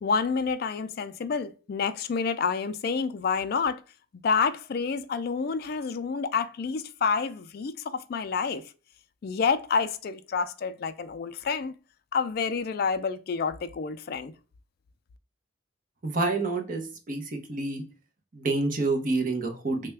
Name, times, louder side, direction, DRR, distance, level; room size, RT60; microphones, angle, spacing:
voice 1, 0.0-3.8 4.2-8.6 9.2-11.7 12.1-14.3, left 5 dB, 50° left, 0.3 m, -28 dB
voice 2, 16.0-17.8 18.3-19.8, right 3 dB, 40° right, 0.7 m, -28 dB
3.3 x 2.2 x 3.2 m
head